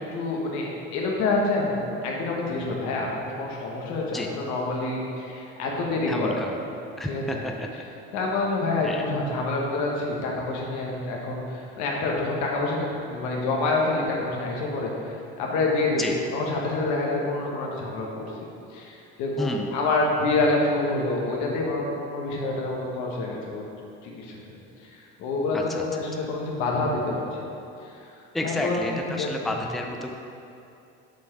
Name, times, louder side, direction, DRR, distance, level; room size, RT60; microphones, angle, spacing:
voice 1, 0.1-6.6 7.0-7.4 8.1-18.3 18.7-23.6 24.0-27.2 27.8-28.0 28.4-29.3, left 2 dB, 70° left, -2 dB, 1.5 m, -27 dB
voice 2, 6.1-6.5 7.0-7.8 8.8-9.0 16.0-16.1 19.4-19.8 25.5-25.8 28.3-30.1, left 1 dB, ahead, 2 dB, 0.5 m, -31 dB
7.1 x 4.8 x 4.8 m, 2.7 s
supercardioid pair, 85°, 30 cm